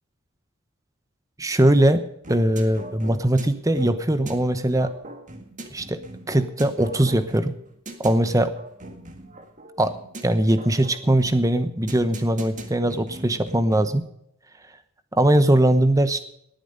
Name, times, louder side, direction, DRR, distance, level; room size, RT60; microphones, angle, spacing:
voice 1, 1.4-2.0 2.3-4.9 5.7-6.0 6.3-7.5 8.0-8.5 9.8-9.9 10.2-14.0 15.1-16.2, right 1 dB, 15° right, 11 dB, 1.0 m, -20 dB
sound 1, 2.2-14.1, right 1 dB, 35° right, 1.9 m, -41 dB
19.0 x 9.1 x 5.2 m, 0.75 s
head